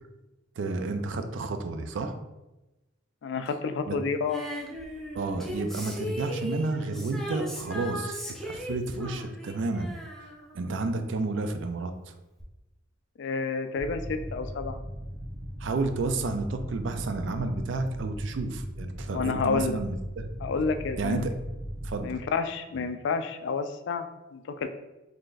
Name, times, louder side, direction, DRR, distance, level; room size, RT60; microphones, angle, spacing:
voice 1, 0.6-2.2 3.9-4.0 5.1-9.9 10.5-12.1 15.6-20.3 21.0-21.3 21.8-22.2, right 3 dB, 65° right, 8 dB, 0.4 m, -31 dB
voice 2, 3.2-4.4 13.2-14.8 19.1-19.8 20.4-21.2 22.0-24.7, left 4 dB, 60° left, 9 dB, 0.3 m, -30 dB
Female singing, 4.3-11.3 12.4-12.5, equal, ahead, 0.5 m, -38 dB
sound 1, 13.8-22.0, equal, 20° right, 0.8 m, -38 dB
3.8 x 3.3 x 2.4 m, 1.0 s
head